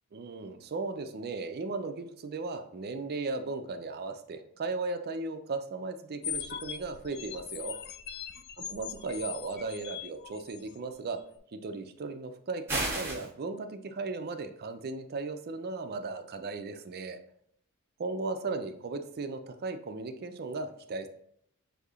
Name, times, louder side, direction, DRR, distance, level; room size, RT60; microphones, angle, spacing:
voice 1, 0.1-7.8 8.7-11.2 11.5-17.2 18.0-21.1, right 3 dB, 45° right, 7 dB, 0.5 m, -36 dB
sound 1, 6.2-10.8, left 8 dB, 45° left, 0.3 m, -40 dB
sound 2, 12.7-13.3, right 2 dB, 10° right, 1.2 m, -31 dB
6.4 x 2.7 x 2.4 m, 0.70 s
head